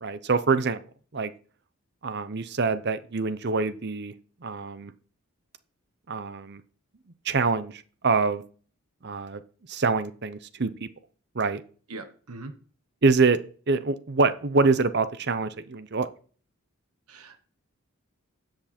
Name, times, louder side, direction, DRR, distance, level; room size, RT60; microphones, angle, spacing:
voice 1, 0.0-0.8 1.1-1.3 2.0-4.1 4.4-4.9 6.1-6.6 7.2-8.4 9.0-9.4 9.7-10.9 11.3-11.6 13.0-13.4 13.7-16.1, right 4 dB, 50° right, 13 dB, 0.7 m, -25 dB
voice 2, 11.9-12.5 17.1-17.4, right 2 dB, 85° right, 8 dB, 1.3 m, -41 dB
13.0 x 8.0 x 4.3 m, 0.42 s
head